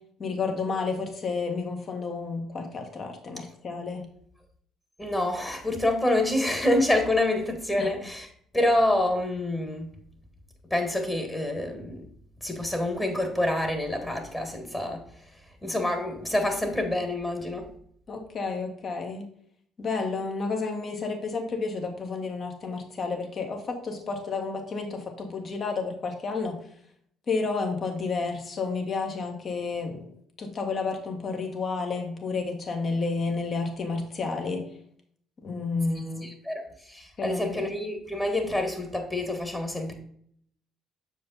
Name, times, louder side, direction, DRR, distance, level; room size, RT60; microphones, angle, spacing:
voice 1, 0.2-4.1 7.8-7.9 18.1-19.3 19.8-26.6 27.3-30.1 30.4-34.7 35.4-36.3 37.2-37.7, left 4 dB, 45° left, 3 dB, 1.7 m, -31 dB
voice 2, 5.0-8.3 8.5-9.9 10.7-12.0 12.4-15.0 15.6-17.7 36.2-39.9, left 1 dB, 15° left, 5 dB, 1.6 m, -27 dB
7.0 x 4.9 x 4.2 m, 0.65 s
supercardioid pair, 85°, 0 cm